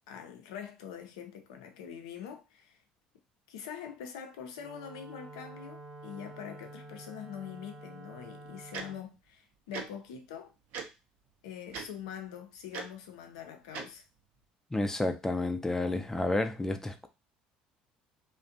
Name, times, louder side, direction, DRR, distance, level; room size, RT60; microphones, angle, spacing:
voice 1, 0.1-2.8 3.5-10.5 11.4-14.0, left 8 dB, 85° left, 0.5 m, -44 dB
Wind instrument woodwind instrument, 4.6-9.1, right 2 dB, 25° right, 0.7 m, -48 dB
Tick-tock, 8.7-8.8 9.7-9.8 10.7-10.9 11.7-11.9 12.7-12.8 13.7-13.8, right 5 dB, 65° right, 0.6 m, -37 dB
voice 2, 14.7-17.1, left 2 dB, 15° left, 0.4 m, -30 dB
2.5 x 2.1 x 2.6 m
hypercardioid pair, 75°, 3 cm